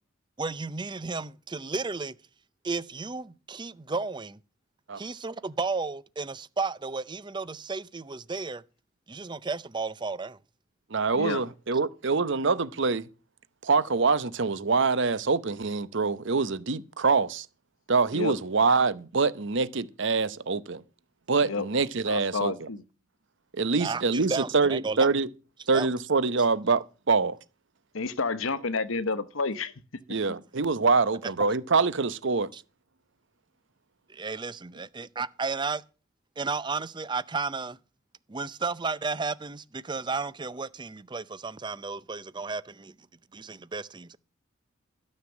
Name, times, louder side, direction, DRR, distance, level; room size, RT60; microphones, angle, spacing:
voice 1, 0.4-2.1 2.6-4.4 5.0-8.6 9.1-10.4 23.8-25.1 25.7-25.9 31.4-31.5 32.5-32.6 34.1-35.8 36.4-37.8 38.3-42.9 43.3-44.2, right 4 dB, 20° right, 0.5 m, -33 dB
voice 2, 10.9-13.0 13.6-17.5 17.9-20.8 21.3-22.7 23.6-25.3 25.7-27.4 30.1-32.5, right 4 dB, 60° right, 0.8 m, -25 dB
voice 3, 22.1-22.8 27.9-29.7, left 4 dB, 75° left, 1.0 m, -30 dB
13.0 x 6.6 x 7.2 m
head